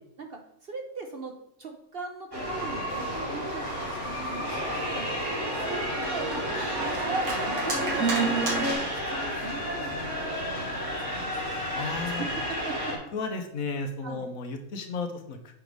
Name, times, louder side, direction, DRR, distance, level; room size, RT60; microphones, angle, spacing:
voice 1, 0.2-10.7 10.9-11.5 12.1-13.0 14.0-14.3, right 4 dB, 50° right, 3 dB, 0.8 m, -40 dB
sound 1, 2.3-13.0, equal, 15° right, 2.1 m, -32 dB
Organ, 2.9-8.7, right 3 dB, 75° right, 1.9 m, -31 dB
voice 2, 11.7-12.3 13.1-15.5, left 4 dB, 65° left, 5 dB, 1.2 m, -33 dB
6.0 x 4.7 x 5.2 m, 0.76 s
omnidirectional pair, 1.6 m